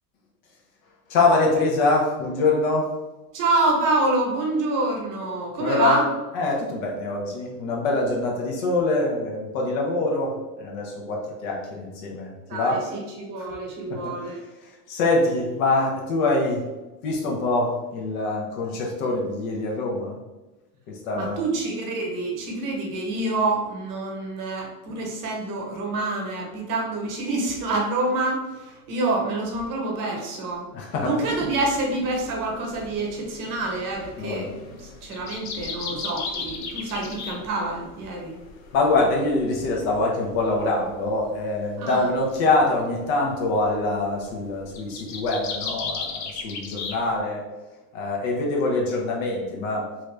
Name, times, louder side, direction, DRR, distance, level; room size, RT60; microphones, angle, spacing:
voice 1, 1.1-2.9 5.6-6.0 6.3-12.8 13.9-14.1 14.9-16.6 17.0-20.2 20.9-21.4 30.7-31.2 34.2-34.5 38.7-47.4 47.9-49.9, left 2 dB, 60° left, -1 dB, 1.0 m, -24 dB
voice 2, 3.3-6.1 12.5-14.4 21.1-30.7 31.0-34.5 34.8-38.4 41.8-42.1, right 2 dB, 45° right, 0 dB, 1.1 m, -27 dB
sound 1, 31.3-47.2, left 5 dB, 35° left, 0.6 m, -38 dB
3.1 x 2.5 x 3.2 m, 1.1 s
hypercardioid pair, 90°, 46 cm